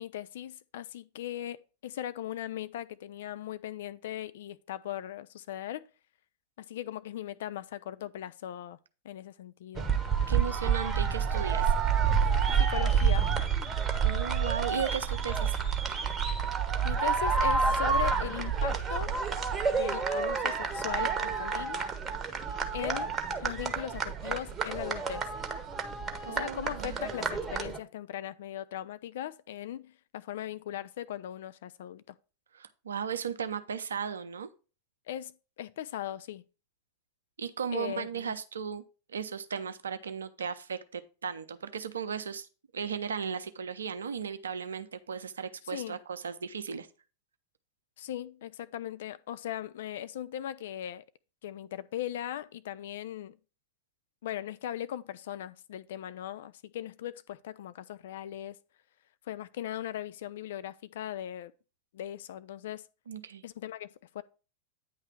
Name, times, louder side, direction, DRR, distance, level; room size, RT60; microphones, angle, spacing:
voice 1, 0.0-5.8 6.6-8.8 9.0-9.9 12.6-13.3 16.8-19.2 19.7-21.8 22.7-25.3 26.3-32.2 35.1-36.4 37.7-38.4 45.7-46.0 48.0-51.0 51.4-53.3 54.2-58.6 59.3-61.5 61.9-62.8 63.4-63.9 64.1-64.2, left 11 dB, 55° left, 0.3 m, -39 dB
sound 1, 9.7-27.8, right 6 dB, 20° right, 0.9 m, -29 dB
voice 2, 10.3-11.7 14.0-15.6 26.3-27.1 32.5-34.5 37.4-38.8 39.1-42.5 42.7-46.9 63.1-63.4, right 7 dB, 70° right, 0.6 m, -36 dB
9.2 x 3.3 x 5.9 m
figure-of-eight pair, 90°, 0 cm